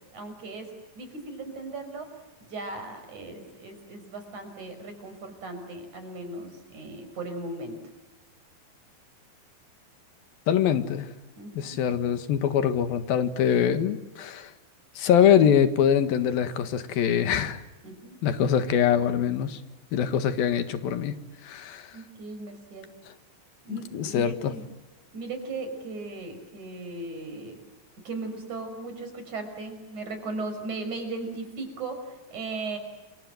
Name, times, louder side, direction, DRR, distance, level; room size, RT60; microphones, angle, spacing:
voice 1, 0.1-0.7 1.0-2.1 2.4-7.8 11.4-11.8 17.8-18.2 21.9-22.9 23.7-24.6 25.1-27.6 28.1-32.8, right 3 dB, 55° right, 6.9 m, -37 dB
voice 2, 10.5-11.1 11.6-14.5 15.0-17.6 18.2-19.6 19.9-21.2 21.4-22.0 23.1-23.2 23.7-24.5, left 9 dB, 85° left, 3.5 m, -24 dB
29.5 x 25.5 x 7.9 m
omnidirectional pair, 4.1 m